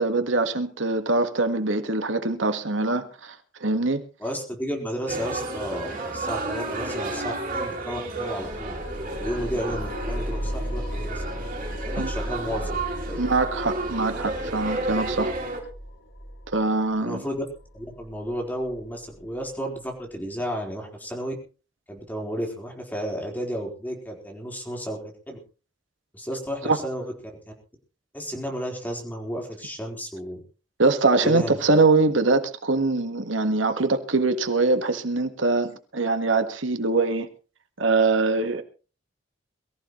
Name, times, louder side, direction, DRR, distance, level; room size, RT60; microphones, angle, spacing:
voice 1, 0.0-4.0 12.0-12.1 13.1-15.3 16.5-17.2 26.6-26.8 30.8-37.3 37.8-38.6, right 3 dB, 90° right, 1.7 m, -23 dB
voice 2, 4.2-8.8 9.2-11.4 11.8-12.8 13.1-13.2 17.0-17.4 17.7-21.3 21.9-25.0 25.3-25.4 26.1-27.0 27.5-27.6 28.1-30.4 31.2-31.6, equal, 10° left, 4.3 m, -32 dB
sound 1, 5.1-15.6, right 2 dB, 45° right, 6.1 m, -32 dB
sound 2, 8.4-19.5, equal, 75° left, 3.4 m, -35 dB
22.5 x 14.5 x 3.2 m
head